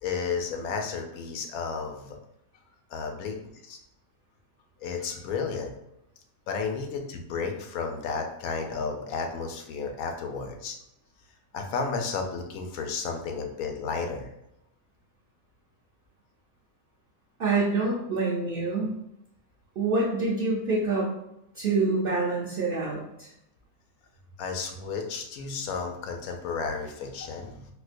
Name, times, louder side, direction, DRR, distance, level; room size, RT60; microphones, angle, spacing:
voice 1, 0.0-2.2 2.9-3.4 3.6-3.8 4.8-5.7 6.5-10.8 11.5-14.3 24.4-27.7, left 5 dB, 80° left, 4 dB, 1.1 m, -32 dB
voice 2, 17.4-18.9 19.8-21.1 21.5-23.3, right 3 dB, 55° right, -5 dB, 0.7 m, -26 dB
4.3 x 2.1 x 2.5 m, 0.81 s
omnidirectional pair, 1.5 m